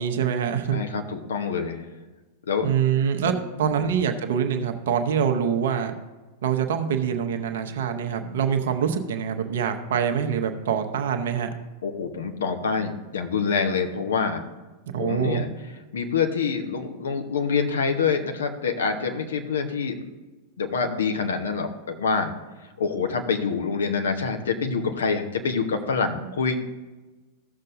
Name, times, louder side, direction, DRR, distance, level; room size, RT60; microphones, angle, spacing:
voice 1, 0.0-0.8 2.6-3.3 3.6-5.9 6.4-11.5 14.9-15.4 26.2-26.3, right 8 dB, 60° right, 6 dB, 0.9 m, -25 dB
voice 2, 0.7-1.9 2.5-2.7 3.8-3.9 11.8-14.4 15.0-15.5 15.9-20.0 20.6-22.3 22.8-26.6, left 5 dB, 65° left, 5 dB, 1.0 m, -26 dB
15.5 x 6.5 x 2.6 m, 1.2 s
figure-of-eight pair, 90°, 0 cm